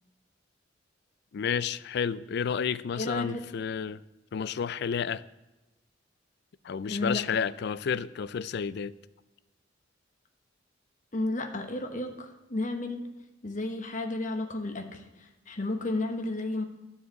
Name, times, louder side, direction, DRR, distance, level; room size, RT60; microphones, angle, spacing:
voice 1, 1.3-4.0 4.3-5.2 6.6-8.9, left 7 dB, 60° left, 17 dB, 0.4 m, -31 dB
voice 2, 2.9-3.4 6.8-7.4 11.1-13.0 13.4-16.6, left 2 dB, 45° left, 5 dB, 1.2 m, -32 dB
11.0 x 4.8 x 7.6 m, 1.0 s
head